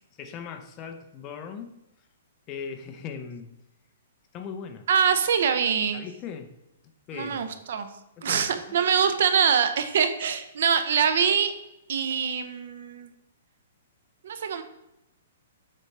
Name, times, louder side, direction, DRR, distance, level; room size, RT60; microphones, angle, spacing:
voice 1, 0.2-1.8 2.5-3.6 4.3-4.9 5.9-6.5 7.1-7.6 8.2-8.7, left 6 dB, 25° left, 5 dB, 0.7 m, -39 dB
voice 2, 4.9-6.0 7.1-7.9 8.2-11.5 11.9-13.1 14.2-14.6, right 7 dB, 65° right, 9 dB, 0.7 m, -24 dB
7.4 x 5.4 x 3.3 m, 0.90 s
hypercardioid pair, 160°, 0 cm